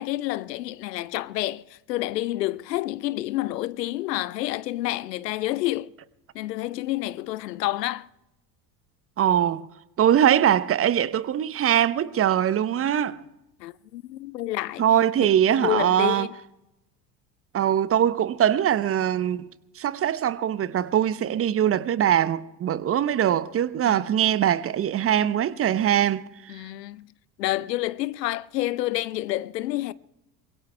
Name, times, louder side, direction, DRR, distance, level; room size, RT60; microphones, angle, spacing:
voice 1, 0.0-5.9 6.3-8.1 13.6-14.9 15.5-16.3 23.8-24.1 26.5-27.0 27.4-29.9, left 16 dB, 75° left, 0.6 m, -29 dB
voice 2, 9.2-9.7 10.0-13.2 14.8-16.3 17.5-19.5 19.8-26.3, right 10 dB, 30° right, 0.7 m, -22 dB
25.0 x 22.0 x 2.2 m
figure-of-eight pair, 65°, 50 cm